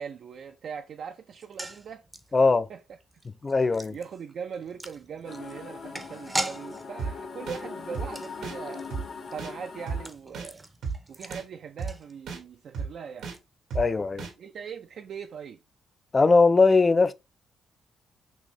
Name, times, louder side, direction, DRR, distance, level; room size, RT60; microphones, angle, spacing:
voice 1, 0.0-2.0 2.7-2.8 3.6-8.9 9.3-10.7 11.1-13.3 14.4-15.6, right 7 dB, 65° right, 0.5 m, -40 dB
sound 1, 1.3-12.6 12.8-12.9 13.2-13.4, right 1 dB, 15° right, 0.7 m, -40 dB
voice 2, 2.3-2.7 3.4-4.0 13.7-14.3 16.1-17.1, left 3 dB, 30° left, 0.4 m, -20 dB
sound 2, 5.2-10.1, left 5 dB, 55° left, 1.3 m, -41 dB
sound 3, 7.0-7.1 7.5-7.6 7.9-8.1 8.4-8.6 8.9-9.0 9.4-9.5 9.9-10.0 10.3-10.5 10.8-11.0 11.3-11.4 11.8-11.9 12.3-12.4 12.7-12.9 13.2-13.4 13.7-13.8 14.2-14.3, right 5 dB, 85° right, 1.3 m, -33 dB
6.2 x 2.7 x 3.1 m
cardioid pair, 110°, 0 cm